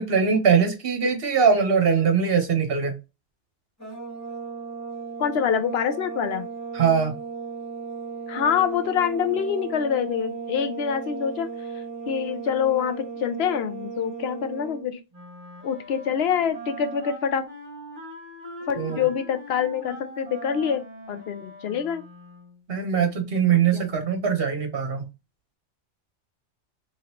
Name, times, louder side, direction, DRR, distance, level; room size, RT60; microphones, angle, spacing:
voice 1, 0.0-2.9 6.7-7.1 18.8-19.0 22.7-25.1, right 6 dB, 50° right, 1.2 m, -22 dB
sound 1, 3.8-14.8, right 5 dB, 15° left, 2.2 m, -35 dB
voice 2, 5.2-6.5 8.3-11.5 12.1-15.0 15.6-17.5 18.7-22.0 23.5-23.8, left 8 dB, 65° left, 0.7 m, -26 dB
Wind instrument woodwind instrument, 15.1-22.6, right 1 dB, 30° right, 2.0 m, -41 dB
3.7 x 3.1 x 2.9 m
omnidirectional pair, 1.3 m